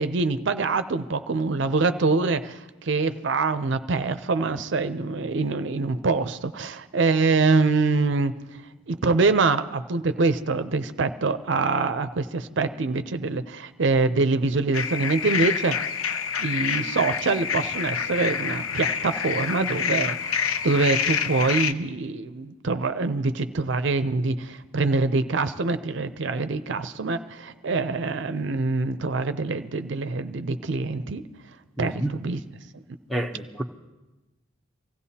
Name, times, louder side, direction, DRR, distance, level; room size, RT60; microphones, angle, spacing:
voice 1, 0.0-8.3 8.9-15.9 16.4-31.3 31.8-32.4, right 3 dB, 60° right, 0.5 m, -25 dB
sound 1, 14.7-21.7, left 7 dB, 85° left, 0.6 m, -27 dB
voice 2, 31.8-32.2 33.1-33.6, right 1 dB, ahead, 0.7 m, -29 dB
25.0 x 16.0 x 2.8 m
head